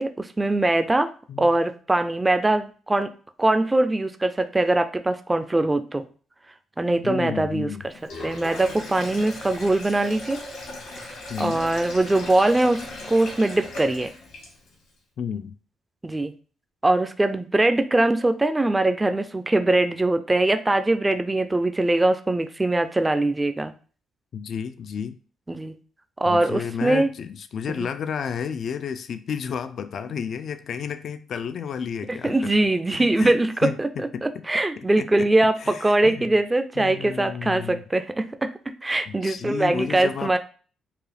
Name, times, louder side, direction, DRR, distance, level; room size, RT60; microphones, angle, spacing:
voice 1, 0.0-1.1 1.4-3.1 3.4-6.0 6.8-7.7 8.2-10.4 11.0-14.1 16.0-16.3 16.8-23.7 25.5-25.7 26.2-27.1 27.8-27.9 32.1-33.9 34.2-38.5 38.8-40.4, right 2 dB, 15° right, 0.4 m, -22 dB
voice 2, 7.0-7.8 11.3-11.6 15.2-15.5 24.3-25.2 26.2-32.5 32.9-33.8 34.1-34.2 34.8-35.3 35.6-36.3 36.8-37.8 39.1-40.4, left 7 dB, 60° left, 0.3 m, -32 dB
Sink (filling or washing), 7.9-14.8, left 2 dB, 85° left, 1.9 m, -38 dB
4.6 x 2.3 x 3.3 m
cardioid pair, 90°, 0 cm